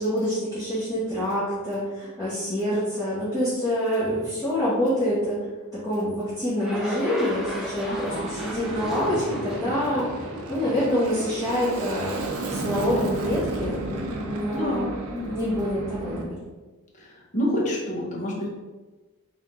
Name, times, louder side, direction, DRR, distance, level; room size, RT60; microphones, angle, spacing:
voice 1, 0.0-5.4 5.8-10.1 10.5-12.2 12.4-16.3, equal, 15° left, -13 dB, 1.1 m, -26 dB
sound 1, 6.6-11.9, right 1 dB, ahead, 0.6 m, -36 dB
Aircraft, 7.4-16.2, right 2 dB, 75° right, 0.5 m, -34 dB
voice 2, 7.9-8.4 14.5-15.0 17.0-18.5, equal, 35° left, -3 dB, 0.8 m, -28 dB
3.5 x 2.7 x 3.5 m, 1.2 s
head